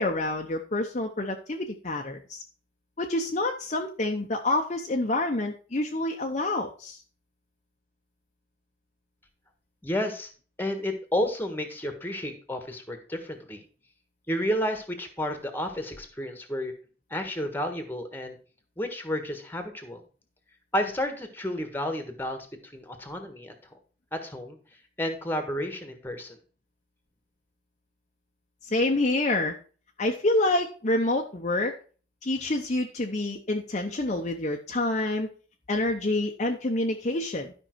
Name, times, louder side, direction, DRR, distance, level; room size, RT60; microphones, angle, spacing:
voice 1, 0.0-2.4 3.0-7.0 28.6-29.5 30.0-31.7 32.2-35.3 35.7-37.5, left 2 dB, 40° left, 3 dB, 0.8 m, -27 dB
voice 2, 9.8-10.3 10.6-13.6 14.3-16.7 17.1-18.4 18.8-20.0 20.7-23.5 24.1-24.6 25.0-26.4, left 1 dB, 10° left, 7 dB, 1.5 m, -31 dB
12.0 x 5.5 x 4.6 m, 0.39 s
head